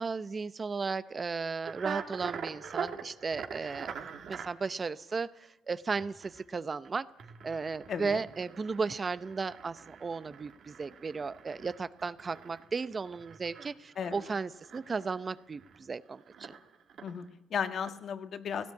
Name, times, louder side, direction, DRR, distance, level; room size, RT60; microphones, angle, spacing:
voice 1, 0.0-3.9 4.3-7.1 7.4-16.5, right 4 dB, 35° right, 15 dB, 0.7 m, -35 dB
sound 1, 1.6-4.5 5.8-6.4 6.8-6.9 7.2-15.8 16.1-17.3 17.6-17.9, right 7 dB, 70° right, 2.6 m, -44 dB
voice 2, 7.9-8.2 14.0-14.2 17.0-18.7, left 7 dB, 60° left, 9 dB, 1.6 m, -35 dB
17.5 x 16.5 x 9.5 m, 0.88 s
cardioid pair, 90°, 0 cm